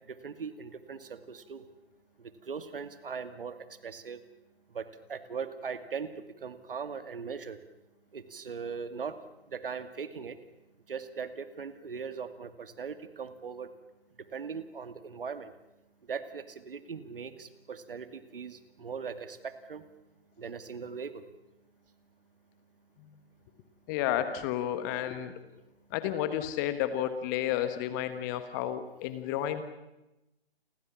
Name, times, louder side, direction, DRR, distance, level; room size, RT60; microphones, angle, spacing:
voice 1, 0.1-1.6 2.2-4.2 4.7-7.6 8.1-9.2 9.5-10.4 10.9-13.7 14.3-15.5 16.1-19.8 20.4-21.2, right 6 dB, 60° right, 10 dB, 2.5 m, -40 dB
voice 2, 23.9-25.3 25.9-29.6, left 11 dB, 20° left, 11 dB, 1.4 m, -31 dB
30.0 x 24.5 x 7.3 m, 0.96 s
figure-of-eight pair, 145°, 32 cm